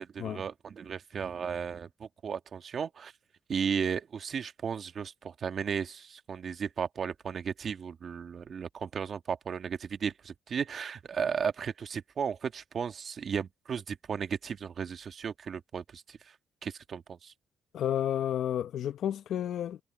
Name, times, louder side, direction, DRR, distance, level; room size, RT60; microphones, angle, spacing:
voice 1, 0.0-3.1 3.5-16.3 16.6-17.3, right 7 dB, 50° right, 1.5 m, -35 dB
voice 2, 17.7-19.8, left 10 dB, 70° left, 0.8 m, -31 dB
cardioid pair, 90°, 0 cm